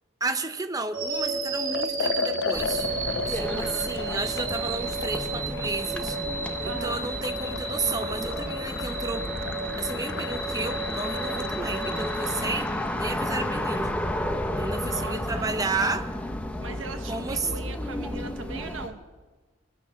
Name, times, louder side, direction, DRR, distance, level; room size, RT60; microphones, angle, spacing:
voice 1, 0.2-2.9 3.3-6.2 6.6-9.3 9.8-14.0 14.6-16.1 17.0-17.5, right 3 dB, 20° right, 9 dB, 0.8 m, -32 dB
sound 1, 0.9-13.1, right 3 dB, 90° right, 2.7 m, -33 dB
Liquid, 1.7-12.9, left 6 dB, 65° left, 0.5 m, -36 dB
sound 2, 2.5-18.9, left 1 dB, 5° left, 1.0 m, -33 dB
voice 2, 3.4-3.9 6.6-7.0 14.8-15.5 16.6-19.0, right 3 dB, 75° right, 7 dB, 1.1 m, -39 dB
23.5 x 9.6 x 6.4 m, 1.3 s
head